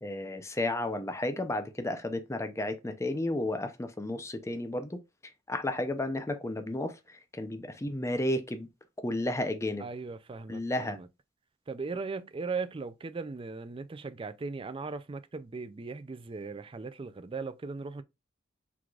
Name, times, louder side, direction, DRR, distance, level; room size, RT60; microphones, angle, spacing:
voice 1, 0.0-5.0 5.5-8.7 9.0-9.8 10.5-11.0, left 1 dB, 15° left, 0.6 m, -32 dB
voice 2, 9.8-11.1 11.7-18.0, right 4 dB, 25° right, 0.4 m, -38 dB
4.7 x 3.8 x 2.4 m
head